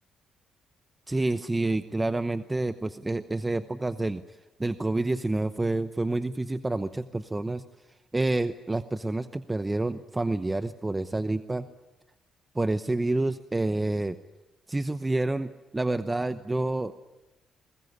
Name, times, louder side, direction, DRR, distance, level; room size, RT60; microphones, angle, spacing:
voice 1, 1.1-7.6 8.1-11.7 12.5-14.2 14.7-16.9, right 2 dB, 15° right, 10 dB, 0.8 m, -28 dB
23.0 x 20.5 x 9.7 m, 1.1 s
cardioid pair, 90°, 0 cm